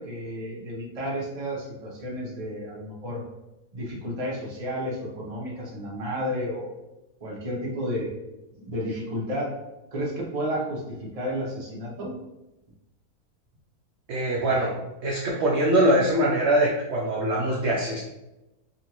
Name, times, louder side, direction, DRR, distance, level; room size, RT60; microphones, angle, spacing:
voice 1, 0.0-3.2 3.7-6.8 7.2-8.1 8.6-9.5 9.9-12.2, equal, 30° right, -4 dB, 0.8 m, -32 dB
voice 2, 14.1-14.8 15.0-18.0, right 1 dB, 60° right, -3 dB, 0.8 m, -23 dB
3.8 x 2.4 x 2.9 m, 0.96 s
omnidirectional pair, 1.6 m